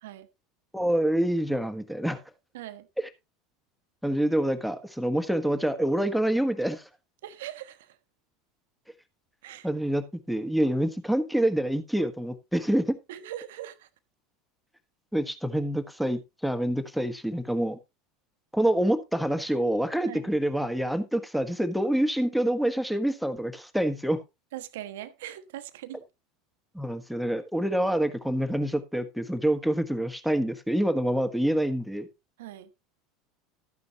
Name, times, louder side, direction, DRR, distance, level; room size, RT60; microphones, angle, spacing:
voice 1, 0.7-2.2 4.0-6.9 9.6-13.0 15.1-17.8 18.5-24.2 26.7-32.1, right 1 dB, ahead, 1.4 m, -26 dB
voice 2, 2.5-2.9 7.2-8.0 9.4-9.7 13.1-13.9 20.0-20.3 24.5-26.0 32.4-32.7, right 13 dB, 70° right, 1.1 m, -41 dB
13.0 x 9.4 x 2.9 m
figure-of-eight pair, 75°, 0 cm